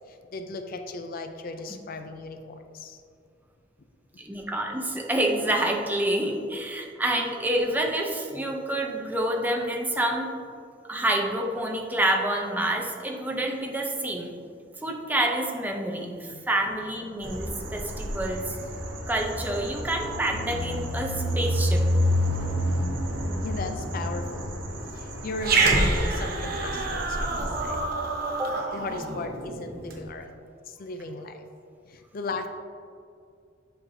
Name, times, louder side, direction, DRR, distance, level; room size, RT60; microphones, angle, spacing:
voice 1, 0.1-3.0 16.0-16.5 23.4-24.5 24.9-27.8 28.7-30.3 30.7-31.4 31.9-32.5, left 3 dB, 50° left, 7 dB, 0.4 m, -36 dB
voice 2, 4.2-10.3 10.9-14.3 14.8-18.6 19.1-21.8 28.3-28.5, right 1 dB, 10° right, 1 dB, 0.6 m, -28 dB
sound 1, 17.2-27.8, equal, 90° right, 0.9 m, -29 dB
Growling, 25.4-30.0, right 3 dB, 55° right, 0.9 m, -27 dB
8.2 x 5.6 x 2.7 m, 2.3 s
head